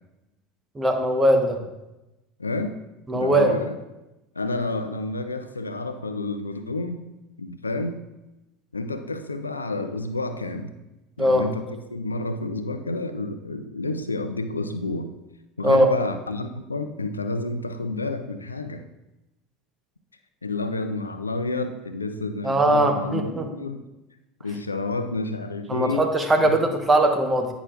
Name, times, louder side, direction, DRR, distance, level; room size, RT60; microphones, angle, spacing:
voice 1, 0.7-1.6 3.1-3.6 11.2-11.5 15.6-15.9 22.4-23.4 25.7-27.5, right 1 dB, 20° right, 4 dB, 1.0 m, -20 dB
voice 2, 2.4-2.8 3.1-3.8 4.4-7.0 7.4-8.0 8.7-10.7 11.2-15.1 15.6-18.8 20.4-23.8 24.4-26.1 26.4-26.6, left 2 dB, 90° left, 9 dB, 0.4 m, -29 dB
9.7 x 5.9 x 2.5 m, 0.97 s
figure-of-eight pair, 75°, 0 cm